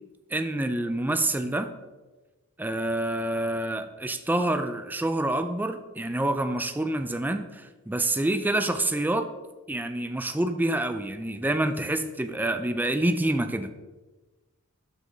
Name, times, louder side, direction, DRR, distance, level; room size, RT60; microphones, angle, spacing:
voice 1, 0.3-1.7 2.6-9.3 9.7-13.7, right 1 dB, 10° right, 8 dB, 0.4 m, -27 dB
7.4 x 6.4 x 3.9 m, 1.2 s
head